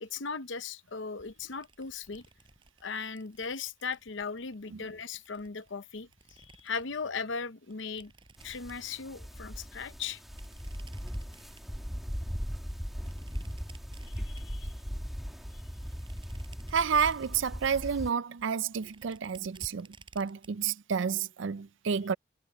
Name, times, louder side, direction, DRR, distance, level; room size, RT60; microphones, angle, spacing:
voice 1, 0.0-2.2 2.8-8.1 8.4-10.2 14.0-14.7 15.5-15.6, left 5 dB, 70° left, 0.8 m, -38 dB
sound 1, 1.2-7.0 7.7-9.2 10.2-11.9 12.7-15.0 15.4-17.6 18.0-18.1 18.4-20.7, right 2 dB, 25° right, 8.0 m, -57 dB
sound 2, 8.4-18.1, equal, ahead, 1.8 m, -39 dB
voice 2, 16.7-19.9 20.2-22.1, right 6 dB, 70° right, 0.5 m, -30 dB
head